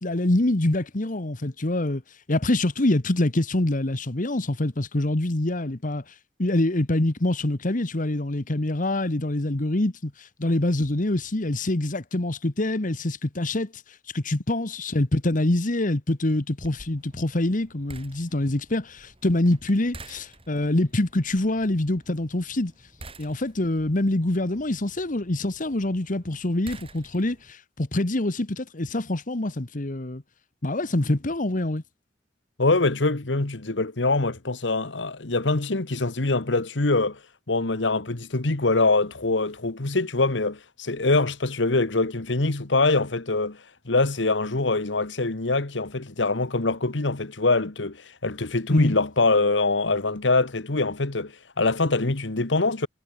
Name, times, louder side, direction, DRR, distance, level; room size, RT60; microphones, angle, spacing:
voice 1, 0.0-2.0 2.3-6.1 6.4-13.8 14.1-22.7 23.2-30.2 30.6-31.8 48.7-49.0, left 1 dB, 45° left, 1.4 m, -25 dB
sound 1, 16.6-27.5, right 2 dB, 30° right, 6.9 m, -49 dB
voice 2, 32.6-37.2 37.5-43.6 43.8-52.9, left 3 dB, 80° left, 1.5 m, -24 dB
head